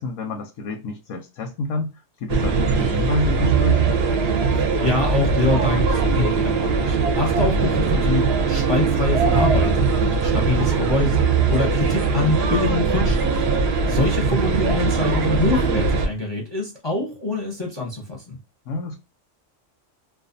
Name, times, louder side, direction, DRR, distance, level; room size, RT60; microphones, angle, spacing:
voice 1, 0.0-4.0 11.0-11.1 13.8-14.4 18.7-19.0, left 2 dB, 85° left, 0.9 m, -29 dB
sound 1, 2.3-16.1, right 4 dB, 65° right, 0.7 m, -20 dB
voice 2, 4.6-9.9 10.2-13.4 13.9-18.4, left 3 dB, 30° left, 0.6 m, -25 dB
2.5 x 2.3 x 2.4 m
omnidirectional pair, 1.3 m